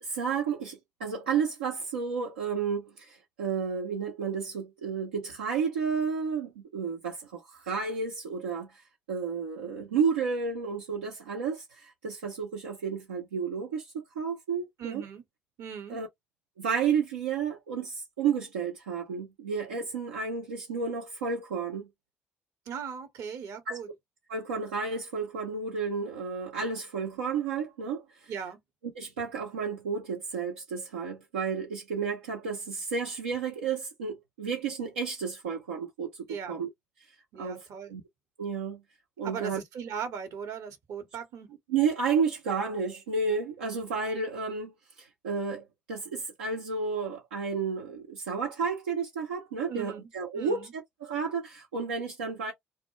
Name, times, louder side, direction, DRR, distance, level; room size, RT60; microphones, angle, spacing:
voice 1, 0.0-15.0 15.9-16.1 16.6-21.9 23.7-23.8 24.3-28.3 29.0-36.7 37.4-37.6 37.9-38.0 38.4-38.8 39.2-39.6 41.7-44.7 45.0-50.7 51.0-52.5, right 5 dB, 90° right, 0.4 m, -32 dB
voice 2, 14.8-15.2 15.6-16.0 22.7-23.9 28.3-28.6 36.3-36.6 37.3-38.0 39.2-41.5 49.7-50.1 50.3-50.7, right 7 dB, 65° right, 0.8 m, -38 dB
2.1 x 2.1 x 2.9 m
hypercardioid pair, 50°, 6 cm